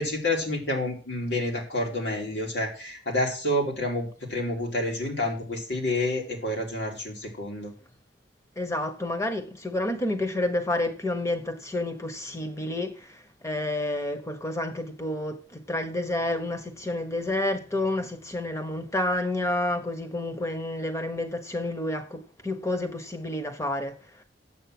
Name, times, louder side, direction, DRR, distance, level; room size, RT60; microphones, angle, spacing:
voice 1, 0.0-7.7, left 1 dB, 75° left, 3.2 m, -29 dB
voice 2, 8.6-24.0, left 1 dB, 15° left, 1.2 m, -29 dB
8.3 x 7.9 x 6.1 m
head